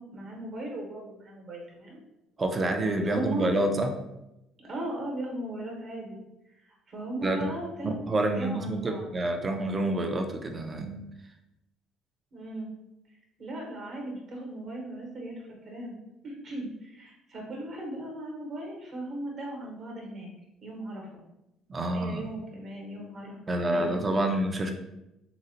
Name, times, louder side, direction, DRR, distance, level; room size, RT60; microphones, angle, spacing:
voice 1, 0.0-2.0 3.1-3.5 4.6-6.2 6.6-8.0 8.4-9.1 12.3-12.7 13.4-16.0 16.2-20.3 20.6-21.2 21.7-24.0, right 1 dB, 45° right, -1 dB, 0.9 m, -37 dB
voice 2, 2.4-3.9 7.2-7.5 7.8-11.0 21.7-22.3 23.5-24.7, right 1 dB, 20° right, 5 dB, 0.4 m, -28 dB
3.8 x 2.1 x 2.7 m, 0.88 s
cardioid pair, 145°, 0 cm